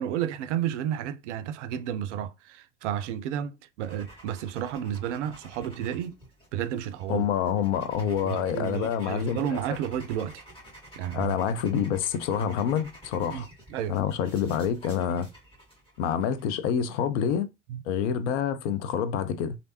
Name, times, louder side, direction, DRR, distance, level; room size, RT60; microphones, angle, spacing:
voice 1, 0.0-6.1 6.5-7.3 8.2-10.4 11.0-11.4 13.3-14.0 17.7-17.8, right 10 dB, 70° right, 0.5 m, -32 dB
sound 1, 3.8-16.4, right 1 dB, 15° left, 1.8 m, -51 dB
voice 2, 7.1-9.6 11.1-13.5 13.9-15.3 16.0-17.5 17.9-19.6, left 8 dB, 65° left, 0.6 m, -27 dB
3.1 x 2.7 x 2.8 m
figure-of-eight pair, 65°, 37 cm